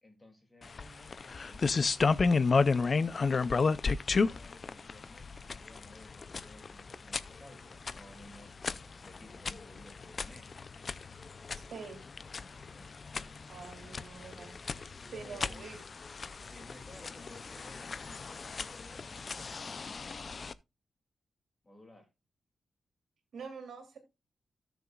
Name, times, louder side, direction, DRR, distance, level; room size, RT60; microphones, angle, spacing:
voice 1, 0.0-10.6 12.6-15.8 16.5-19.9 21.6-22.1, left 1 dB, 15° left, 2.6 m, -57 dB
sound 1, 0.6-20.5, left 4 dB, 35° left, 0.5 m, -33 dB
voice 2, 11.5-12.0 13.5-14.6 15.1-15.8 23.3-24.0, right 5 dB, 70° right, 3.0 m, -45 dB
17.5 x 6.9 x 2.4 m
wide cardioid pair, 180°, 0 cm